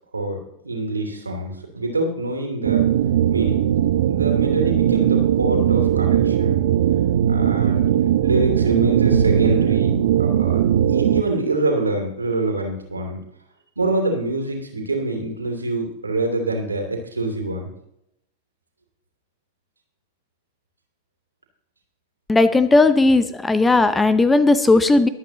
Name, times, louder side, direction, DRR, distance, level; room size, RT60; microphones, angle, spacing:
voice 1, 0.6-2.8 3.3-3.7 4.1-6.6 7.3-7.9 8.2-9.9 10.2-13.2 13.8-17.7, right 2 dB, 80° right, 2 dB, 3.0 m, -25 dB
sound 1, 2.6-11.2, right 10 dB, 55° right, 0.6 m, -19 dB
voice 2, 22.3-25.1, left 3 dB, 10° left, 13 dB, 0.7 m, -16 dB
23.0 x 8.6 x 3.0 m, 0.78 s
figure-of-eight pair, 90°, 0 cm